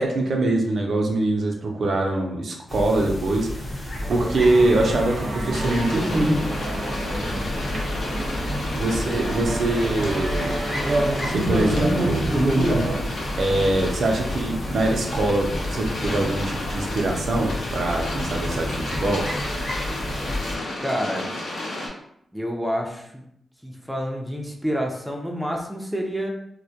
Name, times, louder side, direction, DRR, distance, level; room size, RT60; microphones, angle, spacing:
voice 1, 0.0-6.4 8.7-10.6 11.3-12.3 13.4-19.3, right 2 dB, 65° right, 1 dB, 0.4 m, -23 dB
sound 1, 2.7-20.6, equal, 50° left, 0.8 m, -31 dB
sound 2, 4.0-13.0, right 1 dB, 80° right, 0.8 m, -27 dB
sound 3, 5.5-21.9, left 2 dB, 80° left, 0.6 m, -32 dB
voice 2, 7.1-7.5 20.8-21.3 22.3-23.2 23.6-26.3, equal, 5° right, 0 dB, 0.4 m, -28 dB
2.2 x 2.1 x 2.7 m, 0.74 s
cardioid pair, 80°, 0 cm